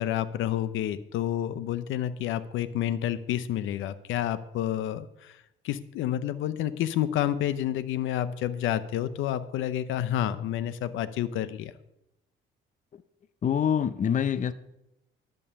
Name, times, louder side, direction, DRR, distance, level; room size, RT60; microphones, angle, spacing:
voice 1, 0.0-11.7, left 11 dB, 85° left, 0.6 m, -29 dB
voice 2, 13.4-14.5, left 8 dB, 40° left, 0.5 m, -25 dB
11.0 x 5.4 x 6.9 m
cardioid pair, 90°, 20 cm